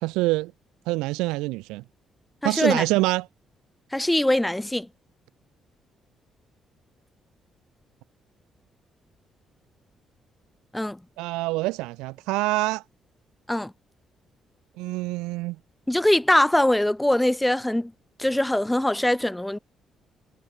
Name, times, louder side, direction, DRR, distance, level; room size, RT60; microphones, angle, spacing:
voice 1, 0.0-0.5 0.9-1.8 2.4-3.3 11.2-12.8 14.8-15.6, right 21 dB, 70° right, 0.5 m, -25 dB
voice 2, 2.4-2.8 3.9-4.9 10.7-11.0 13.5-13.7 15.9-17.9 18.2-19.6, left 1 dB, 10° left, 0.6 m, -22 dB
figure-of-eight pair, 40°, 0 cm